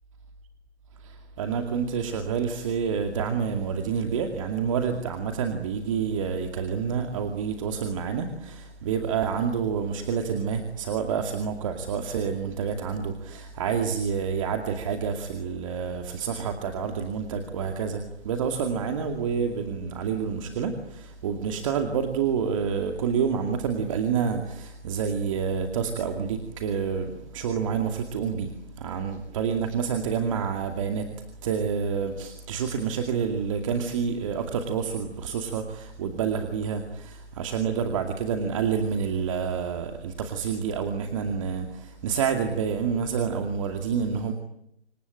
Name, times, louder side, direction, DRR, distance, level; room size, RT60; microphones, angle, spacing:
voice 1, 1.4-28.5 28.8-31.1 31.4-44.3, right 6 dB, 30° right, 5 dB, 2.4 m, -28 dB
27.0 x 24.0 x 8.8 m, 0.74 s
figure-of-eight pair, 150°, 34 cm